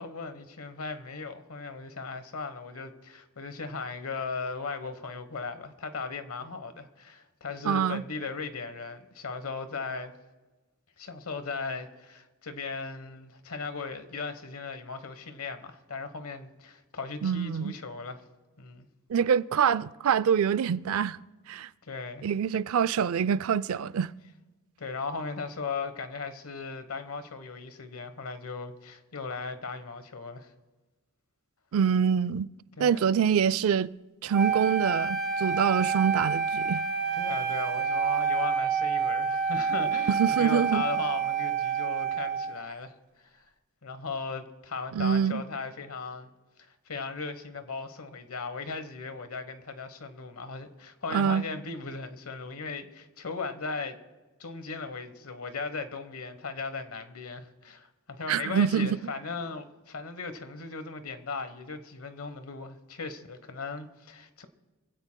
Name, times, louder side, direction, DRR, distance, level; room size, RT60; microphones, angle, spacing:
voice 1, 0.0-10.1 11.0-18.2 18.6-18.8 21.8-22.3 24.8-30.5 32.8-33.1 37.2-43.5 43.8-46.3 46.6-54.0 54.4-64.5, left 4 dB, 80° left, 1.2 m, -37 dB
voice 2, 7.6-8.0 17.2-17.7 19.1-21.2 21.5-21.7 22.2-24.1 31.7-32.5 32.8-33.9 34.2-36.9 40.1-40.8 44.9-45.4 51.1-51.4 58.3-59.0, right 7 dB, 70° right, 0.4 m, -25 dB
Wind instrument woodwind instrument, 34.3-42.6, right 6 dB, 50° right, 1.8 m, -28 dB
24.5 x 16.0 x 2.2 m
head